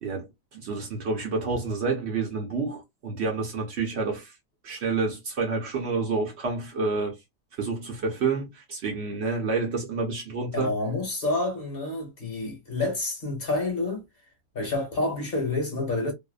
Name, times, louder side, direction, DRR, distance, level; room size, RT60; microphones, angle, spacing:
voice 1, 0.0-4.3 4.6-7.2 7.6-10.7, right 4 dB, 60° right, 0.9 m, -29 dB
voice 2, 10.5-14.0 14.5-16.1, left 2 dB, 45° left, 1.2 m, -28 dB
2.7 x 2.0 x 2.3 m
omnidirectional pair, 1.4 m